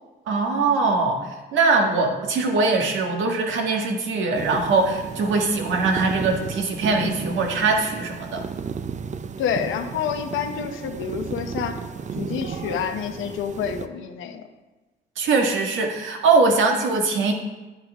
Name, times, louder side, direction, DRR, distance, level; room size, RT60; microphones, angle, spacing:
voice 1, 0.3-8.4 15.2-17.3, right 3 dB, 75° right, 2 dB, 1.7 m, -22 dB
sound 1, 4.4-13.9, right 6 dB, 35° right, 0.6 m, -34 dB
voice 2, 9.4-11.8 12.2-14.4, left 7 dB, 85° left, 6 dB, 1.0 m, -28 dB
10.5 x 9.9 x 3.6 m, 1.2 s
cardioid pair, 90°, 20 cm